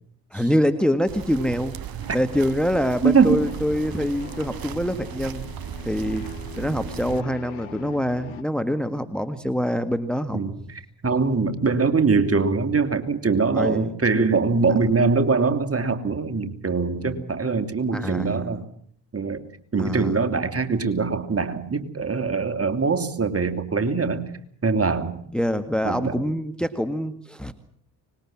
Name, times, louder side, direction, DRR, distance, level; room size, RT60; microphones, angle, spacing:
voice 1, 0.3-1.8 2.1-5.5 5.9-6.3 6.6-10.4 13.5-13.9 17.9-18.6 19.8-20.1 25.3-27.5, equal, ahead, 11 dB, 1.8 m, -25 dB
sound 1, 1.1-7.2, right 11 dB, 50° right, 1.0 m, -36 dB
sound 2, 1.7-8.4, left 8 dB, 70° left, 2.4 m, -42 dB
voice 2, 3.0-3.5 10.3-18.6 19.1-19.4 19.7-24.3 24.6-25.2 25.8-26.2, right 4 dB, 30° right, 7 dB, 2.9 m, -23 dB
25.0 x 20.5 x 7.5 m, 0.62 s
hypercardioid pair, 50°, 47 cm